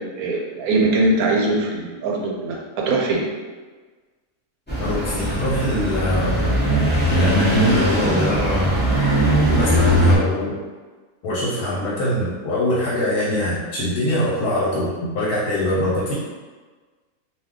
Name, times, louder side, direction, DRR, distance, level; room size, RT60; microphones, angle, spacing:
voice 1, 0.0-3.2, right 2 dB, 75° right, -1 dB, 1.0 m, -21 dB
sound 1, 4.7-10.2, right 1 dB, 15° left, 0.4 m, -19 dB
voice 2, 4.8-6.5 7.1-8.8 9.5-10.5 11.2-16.1, left 1 dB, 75° left, -7 dB, 1.2 m, -23 dB
2.6 x 2.3 x 3.5 m, 1.4 s
omnidirectional pair, 1.6 m